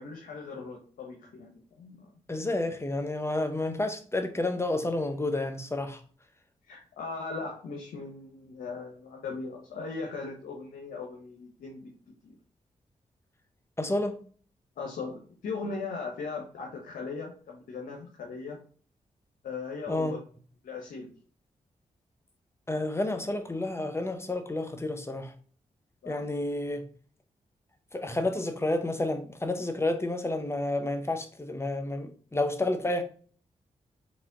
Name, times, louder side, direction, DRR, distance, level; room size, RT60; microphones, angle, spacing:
voice 1, 0.0-2.1 6.7-11.9 12.2-12.3 14.8-18.6 19.4-20.2 20.6-21.1 26.0-26.4, left 4 dB, 85° left, 0.8 m, -38 dB
voice 2, 2.3-6.0 13.8-14.2 19.9-20.2 22.7-25.3 26.1-26.8 27.9-33.0, left 2 dB, 20° left, 0.9 m, -30 dB
4.1 x 2.9 x 3.7 m
supercardioid pair, 45°, 14 cm